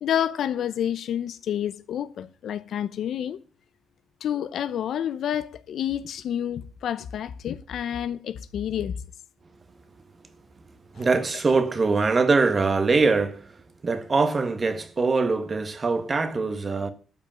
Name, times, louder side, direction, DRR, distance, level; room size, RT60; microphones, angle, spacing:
voice 1, 0.0-3.4 4.2-9.0 11.0-11.1, left 10 dB, 70° left, 0.9 m, -29 dB
voice 2, 10.9-13.6 13.8-16.9, right 4 dB, 35° right, 1.6 m, -23 dB
12.5 x 5.5 x 9.0 m
cardioid pair, 90°, 0 cm